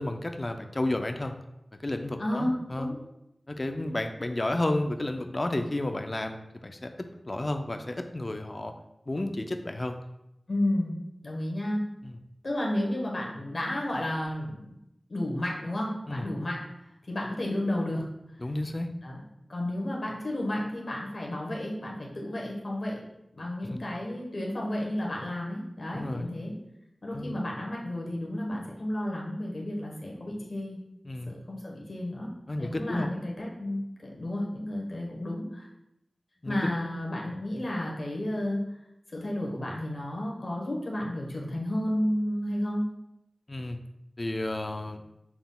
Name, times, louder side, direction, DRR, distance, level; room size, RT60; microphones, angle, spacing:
voice 1, 0.0-1.3 1.8-2.9 3.5-8.7 9.1-10.0 12.0-12.2 16.1-16.3 18.4-18.9 23.7-23.8 25.9-26.3 27.1-27.4 31.1-31.3 32.5-33.1 36.4-36.7 43.5-43.8 44.2-45.0, left 1 dB, 40° left, 6 dB, 0.4 m, -32 dB
voice 2, 2.2-3.0 10.5-11.0 11.2-11.8 12.4-14.7 15.1-16.6 17.1-18.0 19.0-19.2 19.5-23.0 23.3-26.5 27.0-30.8 31.3-32.3 32.6-35.7 36.5-38.6 39.1-42.8, left 1 dB, 60° left, -2 dB, 1.1 m, -32 dB
5.9 x 3.6 x 2.3 m, 0.86 s
wide cardioid pair, 60°, 0 cm